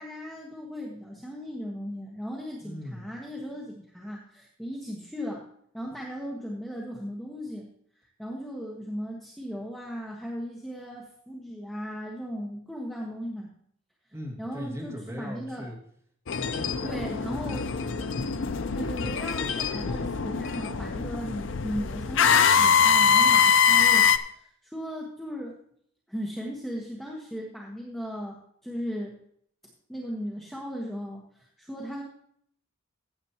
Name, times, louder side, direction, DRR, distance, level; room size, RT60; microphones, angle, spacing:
voice 1, 0.0-5.4 5.7-7.7 8.2-13.5 14.4-15.7 16.8-17.7 18.7-25.6 26.1-28.4 28.6-29.2 29.9-32.0, equal, ahead, -3 dB, 1.2 m, -37 dB
voice 2, 2.6-3.1 14.1-15.8 16.3-18.4, equal, 15° right, -3 dB, 2.2 m, -40 dB
charline&thomas, 16.3-24.2, left 6 dB, 60° left, 0.5 m, -23 dB
15.5 x 7.9 x 2.9 m, 0.66 s
head